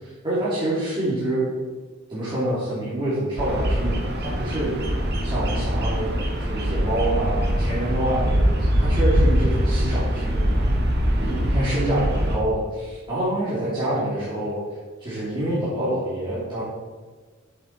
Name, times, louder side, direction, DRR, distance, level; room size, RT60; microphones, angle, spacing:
voice 1, 0.0-1.5 2.1-4.7 5.2-10.6 11.2-14.6 15.0-16.6, right 1 dB, 25° right, -11 dB, 3.0 m, -26 dB
Bird vocalization bird call bird song, 3.4-12.4, equal, 55° right, 1.6 m, -23 dB
7.8 x 7.5 x 4.7 m, 1.4 s
head